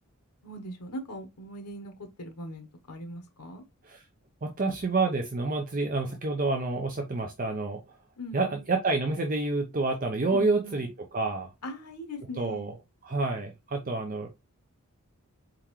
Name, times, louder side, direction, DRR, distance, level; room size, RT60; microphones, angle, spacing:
voice 1, 0.4-3.6 8.2-8.7 10.3-10.9 11.6-12.7, equal, 90° left, 0.9 m, -40 dB
voice 2, 4.4-8.0 8.3-11.5 12.4-12.8 13.0-14.3, right 3 dB, 40° right, 0.6 m, -28 dB
4.4 x 3.7 x 3.0 m
head